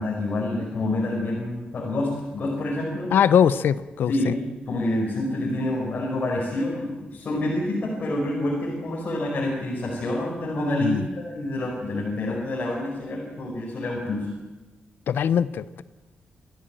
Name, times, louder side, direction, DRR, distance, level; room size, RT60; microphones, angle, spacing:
voice 1, 0.0-3.1 4.1-14.3, left 1 dB, 40° left, -3 dB, 5.2 m, -27 dB
voice 2, 3.1-4.3 10.8-11.0 15.1-15.8, left 8 dB, 80° left, 15 dB, 0.7 m, -21 dB
27.0 x 14.5 x 9.0 m, 1.1 s
wide cardioid pair, 165°, 3 cm